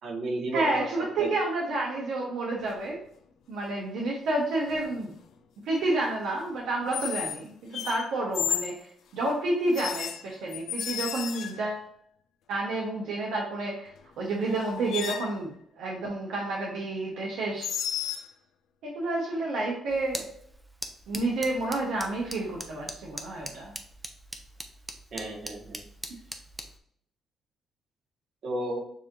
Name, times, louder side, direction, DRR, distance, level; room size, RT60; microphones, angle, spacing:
voice 1, 0.0-0.8 1.2-1.3 25.1-25.8 28.4-28.8, right 2 dB, 60° right, 0 dB, 1.4 m, -32 dB
voice 2, 0.5-3.0 3.5-5.1 5.6-11.9 12.5-17.7 18.8-20.2 21.1-23.7, right 2 dB, 85° right, -2 dB, 1.0 m, -30 dB
sound 1, 2.6-2.9 4.7-5.0 6.9-7.4 7.7-8.8 9.7-11.8 14.0-14.1 14.5-15.4 17.6-18.3, left 9 dB, 75° left, 0.5 m, -33 dB
sound 2, 19.9-26.8, right 1 dB, 10° right, 0.7 m, -42 dB
6.9 x 3.0 x 2.6 m, 0.66 s
cardioid pair, 90°, 0 cm